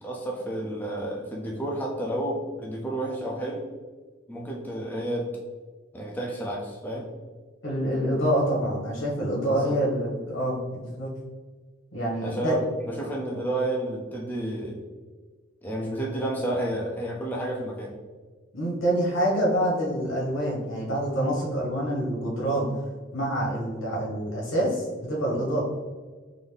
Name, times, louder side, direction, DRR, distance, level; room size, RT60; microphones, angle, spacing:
voice 1, 0.0-3.7 4.3-5.3 5.9-7.1 9.4-9.8 12.2-14.8 15.6-17.9, right 1 dB, 10° left, -3 dB, 0.4 m, -31 dB
voice 2, 7.6-11.1 11.9-12.6 18.5-22.7 23.1-25.6, right 1 dB, 80° left, -3 dB, 1.3 m, -26 dB
3.9 x 2.6 x 3.3 m, 1.4 s
head